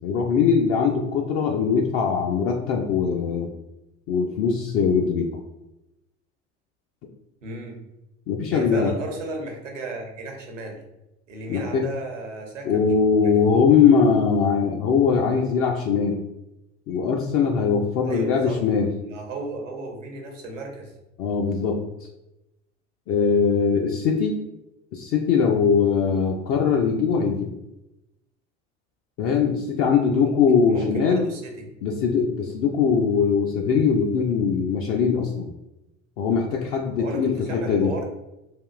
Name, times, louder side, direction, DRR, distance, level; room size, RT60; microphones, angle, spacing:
voice 1, 0.0-3.5 4.1-5.4 8.3-8.9 11.5-11.8 12.7-16.2 16.9-18.9 21.2-22.1 23.1-24.4 24.9-27.5 29.2-31.3 31.8-35.5 36.2-37.9, left 6 dB, 40° left, 2 dB, 0.4 m, -21 dB
voice 2, 7.4-7.8 8.5-10.8 11.3-12.9 13.2-13.4 18.0-18.6 19.0-20.9 30.7-31.6 37.0-38.1, right 3 dB, 80° right, 2 dB, 0.8 m, -34 dB
3.4 x 2.4 x 2.4 m, 0.92 s
figure-of-eight pair, 70°, 37 cm